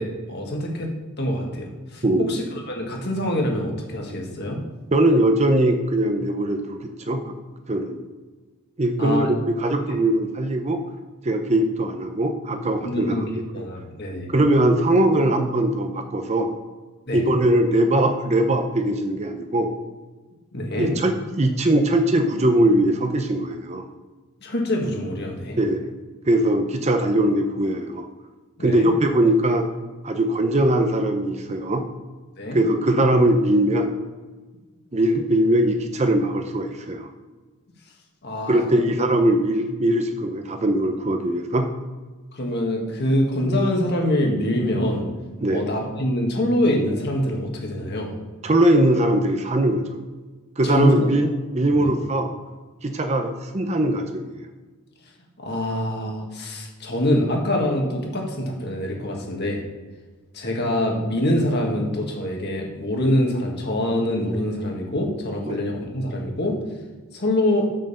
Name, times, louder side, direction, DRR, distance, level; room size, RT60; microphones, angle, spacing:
voice 1, 0.0-2.0 2.3-4.6 9.0-9.3 12.8-14.3 17.1-17.2 20.5-20.9 24.4-25.6 28.6-28.9 32.4-32.6 38.2-38.9 42.3-45.1 45.5-48.2 50.6-51.0 51.7-51.9 55.4-59.6 60.3-66.6 67.1-67.7, left 1 dB, 50° left, 0 dB, 1.8 m, -25 dB
voice 2, 2.0-2.4 4.9-7.3 7.7-8.0 8.8-9.3 9.6-10.8 11.2-13.4 14.3-16.5 17.1-19.7 20.7-23.9 25.5-25.9 26.3-28.1 28.6-29.7 30.0-31.8 32.5-34.0 34.9-37.1 38.4-41.7 45.4-45.6 48.4-49.9 50.6-51.3 51.5-52.3 52.8-54.4 65.5-65.6, right 1 dB, 30° right, 6 dB, 0.7 m, -21 dB
6.5 x 6.4 x 6.7 m, 1.4 s
head